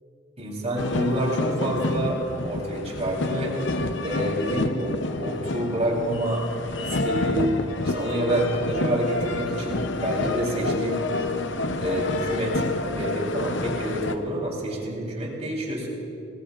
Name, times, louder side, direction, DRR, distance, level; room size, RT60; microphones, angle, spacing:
voice 1, 0.4-3.6 4.0-6.5 6.8-7.5 7.8-11.0 11.8-15.9, right 1 dB, 35° right, -2 dB, 3.7 m, -27 dB
sound 1, 0.8-14.1, left 2 dB, 65° left, 0.7 m, -29 dB
27.0 x 19.5 x 2.5 m, 2.8 s
head